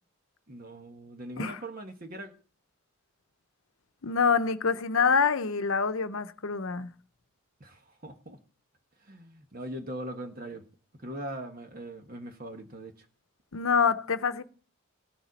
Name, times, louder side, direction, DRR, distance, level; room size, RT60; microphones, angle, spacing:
voice 1, 0.5-2.3 7.6-8.4 9.0-10.6 10.9-13.0, right 1 dB, 40° right, 1.4 m, -41 dB
voice 2, 4.0-6.9 13.5-14.4, left 5 dB, 70° left, 0.8 m, -26 dB
17.5 x 7.3 x 4.1 m
head